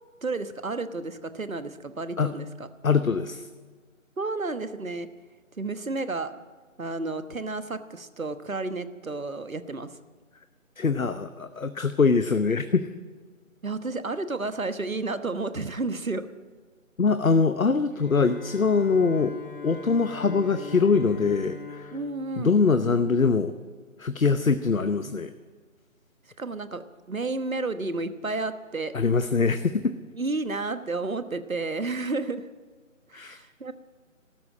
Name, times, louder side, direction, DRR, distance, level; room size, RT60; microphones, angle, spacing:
voice 1, 0.2-2.5 4.2-5.1 5.6-6.3 6.8-9.9 13.6-16.3 21.9-22.6 26.4-28.9 30.2-32.5 33.1-33.7, right 3 dB, 80° right, 12 dB, 1.3 m, -31 dB
voice 2, 2.8-3.5 10.8-12.9 17.0-19.4 19.6-22.0 22.4-23.5 24.0-25.3 28.9-29.9 33.1-33.4, left 4 dB, 75° left, 11 dB, 0.9 m, -23 dB
Bowed string instrument, 17.9-23.1, left 4 dB, 40° left, 1.6 m, -41 dB
14.0 x 13.0 x 7.5 m, 1.5 s
figure-of-eight pair, 155°, 41 cm